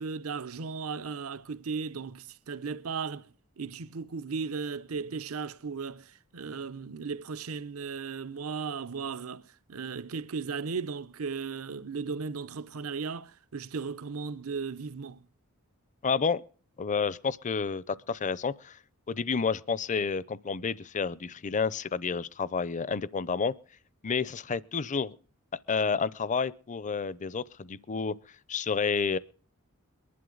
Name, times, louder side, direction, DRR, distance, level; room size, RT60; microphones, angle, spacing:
voice 1, 0.0-3.3 3.6-15.2, right 5 dB, 75° right, 0.7 m, -36 dB
voice 2, 16.0-16.4 16.8-18.8 19.1-23.5 24.0-25.1 25.7-28.1 28.5-29.2, left 5 dB, 35° left, 0.5 m, -30 dB
22.5 x 11.0 x 3.9 m
head